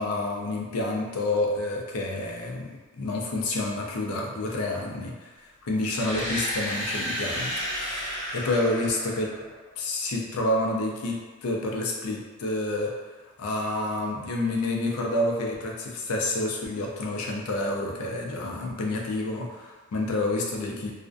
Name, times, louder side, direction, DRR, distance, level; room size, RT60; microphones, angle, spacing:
voice 1, 0.0-2.7 3.0-5.3 5.6-9.3 9.8-11.2 11.4-12.9 13.4-21.0, left 2 dB, 85° left, 0 dB, 0.5 m, -29 dB
sound 1, 5.8-9.8, equal, 50° left, 0.9 m, -32 dB
2.4 x 2.1 x 2.5 m, 1.3 s
head